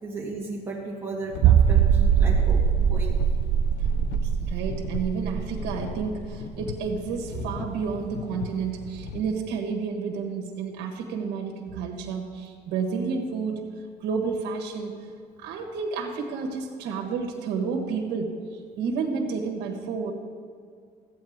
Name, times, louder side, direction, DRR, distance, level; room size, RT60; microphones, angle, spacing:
voice 1, 0.0-3.1, right 3 dB, 15° right, -4 dB, 1.9 m, -35 dB
sound 1, 1.3-9.2, left 6 dB, 80° left, 0.7 m, -38 dB
sound 2, 1.4-6.9 7.2-7.3 7.8-7.9, right 8 dB, 60° right, 0.4 m, -22 dB
voice 2, 4.4-13.6 14.0-15.0 15.4-20.1, right 5 dB, 85° right, 1 dB, 1.4 m, -30 dB
14.0 x 8.7 x 3.6 m, 2.1 s
cardioid pair, 110°, 17 cm